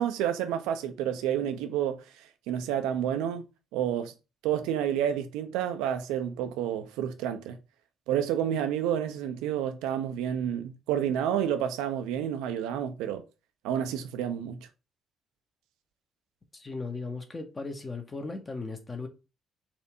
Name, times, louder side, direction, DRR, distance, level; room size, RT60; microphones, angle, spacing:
voice 1, 0.0-3.5 3.7-4.1 4.4-7.6 8.1-13.2 13.6-14.6, right 10 dB, 65° right, 0.4 m, -30 dB
voice 2, 16.5-19.1, left 3 dB, 25° left, 1.0 m, -37 dB
4.3 x 2.6 x 4.7 m
figure-of-eight pair, 45°, 0 cm